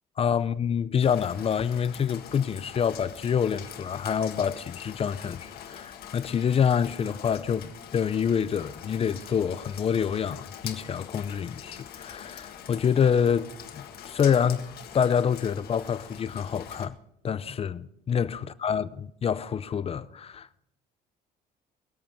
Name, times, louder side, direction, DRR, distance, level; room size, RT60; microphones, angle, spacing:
voice 1, 0.2-14.6 14.9-16.9 17.2-20.6, left 7 dB, 35° left, 0.6 m, -27 dB
Rain, 1.0-16.9, left 9 dB, 65° left, 1.7 m, -44 dB
21.0 x 8.5 x 5.3 m
cardioid pair, 110°, 17 cm